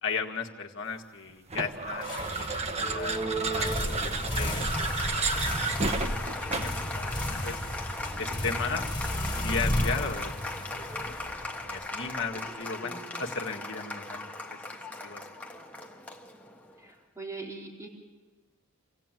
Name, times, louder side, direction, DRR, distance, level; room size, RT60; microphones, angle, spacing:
voice 1, 0.0-5.3 5.7-7.6 8.2-8.9 9.4-10.3 10.6-14.6 15.0-15.2, left 4 dB, 60° left, 2 dB, 1.9 m, -36 dB
sound 1, 1.5-6.9, right 3 dB, 30° right, 1.2 m, -32 dB
sound 2, 2.0-11.8, left 1 dB, 25° left, 4.4 m, -33 dB
Applause, 2.8-16.8, left 1 dB, 5° left, 1.6 m, -38 dB
voice 2, 12.8-13.2 16.8-17.9, right 3 dB, 15° right, -2 dB, 4.0 m, -42 dB
26.5 x 16.0 x 9.2 m, 1.3 s
head